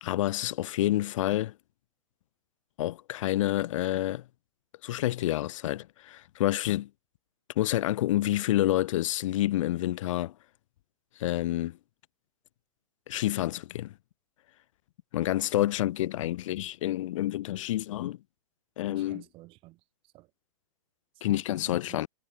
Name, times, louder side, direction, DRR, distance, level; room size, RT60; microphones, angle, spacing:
voice 1, 0.0-1.5 2.8-4.2 4.8-6.9 7.6-10.3 11.2-11.8 13.1-13.9 15.1-18.2 18.8-19.2 21.2-22.1, left 14 dB, 60° left, 0.4 m, -28 dB
voice 2, 18.9-20.3 21.1-22.0, right 20 dB, 30° right, 1.2 m, -52 dB
hypercardioid pair, 145°, 18 cm